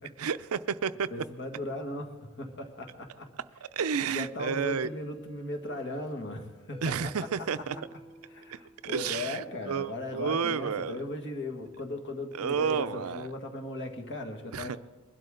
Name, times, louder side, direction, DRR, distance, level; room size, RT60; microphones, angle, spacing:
voice 1, 0.2-1.1 3.6-4.9 6.8-7.8 8.5-8.6 8.8-11.0 12.3-13.3 14.5-14.8, right 6 dB, 65° right, 14 dB, 0.5 m, -31 dB
voice 2, 1.1-3.3 4.1-7.1 8.3-14.8, left 2 dB, 55° left, 4 dB, 1.9 m, -37 dB
sound 1, 4.7-9.4, equal, 5° left, 0.7 m, -53 dB
22.0 x 12.0 x 3.8 m, 1.3 s
head